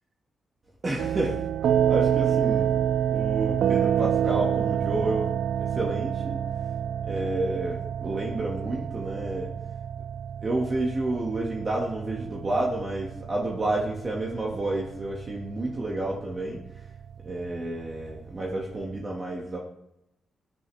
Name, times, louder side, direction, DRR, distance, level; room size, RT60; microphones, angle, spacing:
voice 1, 0.8-2.8 3.1-6.4 7.1-9.5 10.4-16.9 17.2-19.6, right 2 dB, 30° right, -2 dB, 1.9 m, -30 dB
sound 1, 1.0-19.0, right 9 dB, 75° right, 0.3 m, -28 dB
21.5 x 10.0 x 3.5 m, 0.84 s
wide cardioid pair, 145°, 0 cm